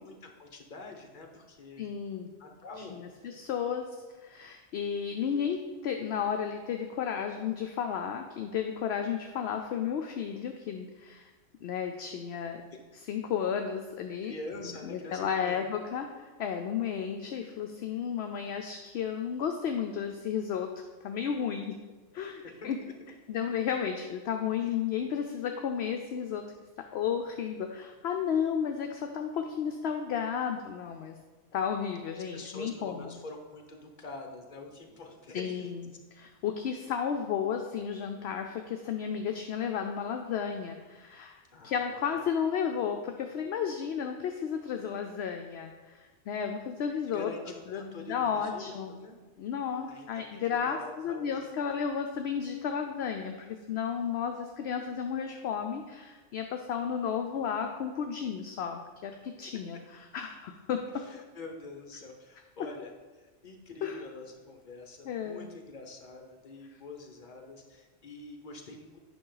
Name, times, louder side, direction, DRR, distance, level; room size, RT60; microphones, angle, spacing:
voice 1, 0.0-1.9 2.4-2.9 12.7-12.8 14.2-15.6 22.4-22.9 24.6-24.7 32.3-35.7 41.5-42.2 47.1-49.2 49.9-51.5 61.0-69.0, left 3 dB, 40° left, 3 dB, 1.1 m, -45 dB
voice 2, 1.8-2.3 2.8-3.9 4.2-11.3 11.6-12.6 13.1-14.3 14.8-20.7 21.0-21.8 22.1-22.8 23.3-26.4 26.9-31.2 31.5-33.1 35.3-35.9 36.1-47.3 47.7-48.9 49.4-50.8 51.0-59.8 60.1-61.1 63.8-64.0 65.1-65.5, left 7 dB, 65° left, 4 dB, 0.8 m, -33 dB
9.3 x 5.6 x 3.9 m, 1.3 s
omnidirectional pair, 1.3 m